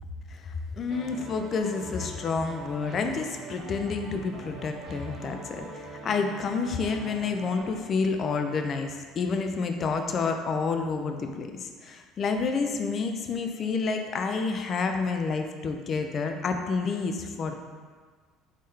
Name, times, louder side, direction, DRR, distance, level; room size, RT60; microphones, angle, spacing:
voice 1, 0.4-17.5, left 4 dB, 45° left, 5 dB, 0.4 m, -29 dB
sound 1, 0.9-7.8, right 2 dB, 50° right, 0.7 m, -43 dB
3.6 x 3.4 x 2.7 m, 1.5 s
supercardioid pair, 90°, 0 cm